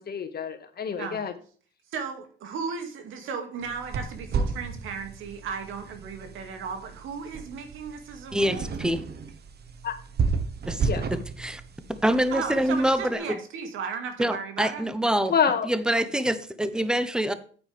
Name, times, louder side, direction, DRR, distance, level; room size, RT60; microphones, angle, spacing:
voice 1, 0.0-1.3 9.8-9.9 10.8-11.0 15.3-15.7, left 7 dB, 50° left, 8 dB, 1.8 m, -27 dB
voice 2, 1.9-8.7 12.3-14.8, right 5 dB, 85° right, 5 dB, 2.4 m, -35 dB
sound 1, 3.6-13.0, right 5 dB, 55° right, 1.3 m, -33 dB
voice 3, 8.3-9.0 10.7-11.6 11.9-13.4 14.2-15.3 15.6-17.3, right 1 dB, 5° right, 11 dB, 1.1 m, -26 dB
9.3 x 9.1 x 3.5 m, 0.43 s
cardioid pair, 90°, 20 cm